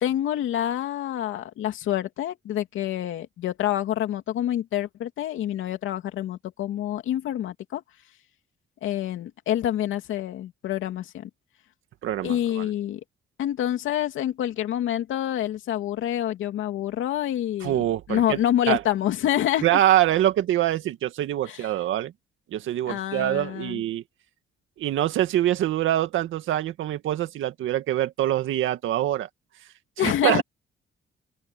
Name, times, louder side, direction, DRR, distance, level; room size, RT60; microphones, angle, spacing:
voice 1, 0.0-7.8 8.8-11.3 12.2-13.0 13.4-19.8 21.5-21.7 22.9-23.8 30.0-30.4, left 12 dB, 80° left, 2.9 m, -27 dB
voice 2, 12.0-12.7 17.6-18.4 18.7-18.8 19.6-22.1 22.5-24.0 24.8-29.3 30.0-30.4, right 13 dB, 80° right, 2.0 m, -24 dB
open air
cardioid pair, 90°, 20 cm